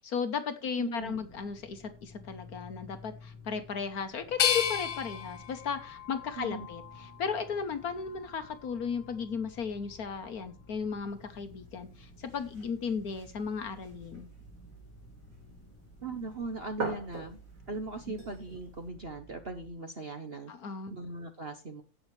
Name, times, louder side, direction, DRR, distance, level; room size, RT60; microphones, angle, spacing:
voice 1, 0.0-14.3 20.5-20.9, left 6 dB, 55° left, 9 dB, 1.3 m, -35 dB
voice 2, 0.8-1.2 6.4-6.7 16.0-17.4 17.7-20.5 20.9-21.8, right 3 dB, 40° right, 6 dB, 0.9 m, -39 dB
sound 1, 1.0-19.7, left 2 dB, 10° left, 1.8 m, -53 dB
sound 2, 4.4-7.3 7.9-8.7, left 9 dB, 75° left, 1.7 m, -33 dB
sound 3, 11.1-18.9, right 3 dB, 70° right, 4.9 m, -46 dB
16.5 x 6.3 x 3.2 m, 0.32 s
omnidirectional pair, 2.1 m